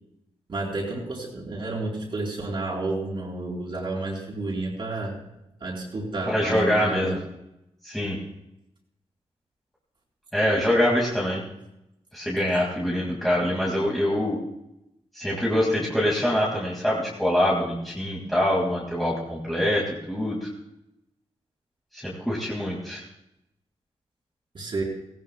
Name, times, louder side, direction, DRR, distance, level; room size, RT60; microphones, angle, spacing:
voice 1, 0.5-5.2 5.6-7.2 24.5-24.8, right 2 dB, 45° right, -1 dB, 3.9 m, -31 dB
voice 2, 6.3-7.1 7.8-8.2 10.3-11.4 12.1-14.4 15.1-20.5 21.9-23.0, left 1 dB, ahead, -5 dB, 2.2 m, -24 dB
18.5 x 17.5 x 2.3 m, 0.86 s
wide cardioid pair, 170°, 11 cm